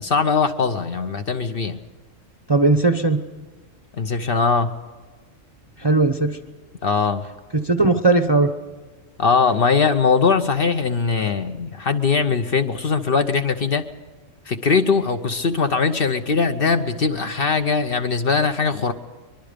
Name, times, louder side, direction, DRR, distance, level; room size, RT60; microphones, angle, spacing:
voice 1, 0.0-1.8 4.0-4.7 6.8-7.2 9.2-13.8 14.5-18.9, left 5 dB, 50° left, 7 dB, 1.0 m, -20 dB
voice 2, 2.5-3.2 5.8-6.4 7.5-8.5, right 3 dB, 25° right, 5 dB, 0.7 m, -18 dB
23.5 x 22.0 x 5.2 m, 1.3 s
omnidirectional pair, 1.3 m